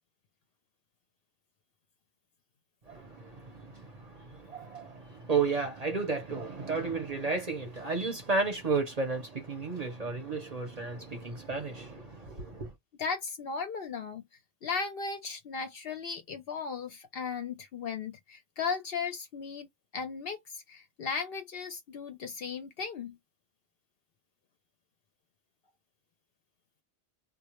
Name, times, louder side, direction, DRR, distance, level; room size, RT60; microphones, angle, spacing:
voice 1, 2.9-12.7, right 4 dB, 40° right, 0.7 m, -33 dB
voice 2, 13.0-14.2 14.6-23.2, left 5 dB, 60° left, 0.7 m, -36 dB
2.2 x 2.0 x 2.9 m
omnidirectional pair, 1.2 m